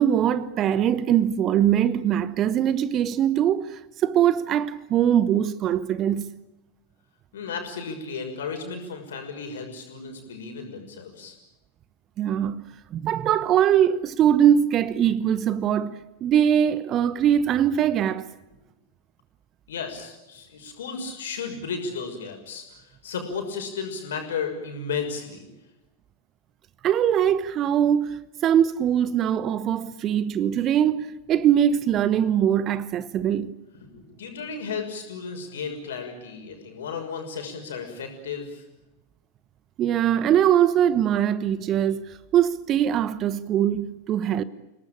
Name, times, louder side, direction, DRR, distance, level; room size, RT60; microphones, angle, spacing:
voice 1, 0.0-6.3 12.2-12.6 12.9-18.3 26.8-33.5 39.8-44.4, right 10 dB, 30° right, 1.1 m, -22 dB
voice 2, 7.3-11.4 19.7-25.5 33.7-38.6, left 5 dB, 60° left, 6.2 m, -34 dB
29.5 x 19.0 x 8.7 m
figure-of-eight pair, 90°, 0 cm